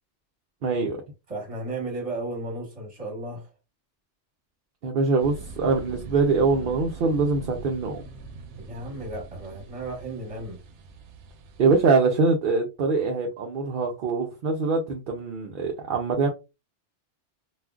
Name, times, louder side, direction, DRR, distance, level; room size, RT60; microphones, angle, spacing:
voice 1, 0.6-1.0 4.8-8.0 11.6-16.3, right 4 dB, 60° right, 0.6 m, -23 dB
voice 2, 1.3-3.5 8.6-10.6, right 2 dB, 30° right, 1.2 m, -34 dB
sound 1, 5.2-11.9, right 4 dB, 75° right, 0.9 m, -42 dB
3.5 x 2.4 x 2.3 m
omnidirectional pair, 1.2 m